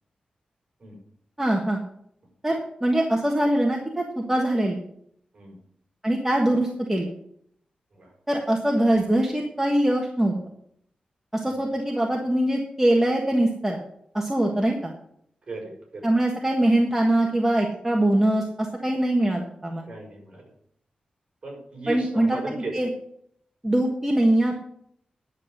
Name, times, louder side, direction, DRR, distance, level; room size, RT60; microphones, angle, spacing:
voice 1, 1.4-1.8 2.4-4.8 6.0-7.1 8.3-10.3 11.3-13.8 14.1-14.9 16.0-19.8 21.9-22.4 22.7-22.9 23.6-24.6, right 1 dB, 10° right, 0 dB, 1.5 m, -23 dB
voice 2, 15.5-16.1 19.9-20.5 21.4-22.8, right 2 dB, 35° right, -1 dB, 6.0 m, -36 dB
10.5 x 7.1 x 7.9 m, 0.70 s
wide cardioid pair, 130°, 3 cm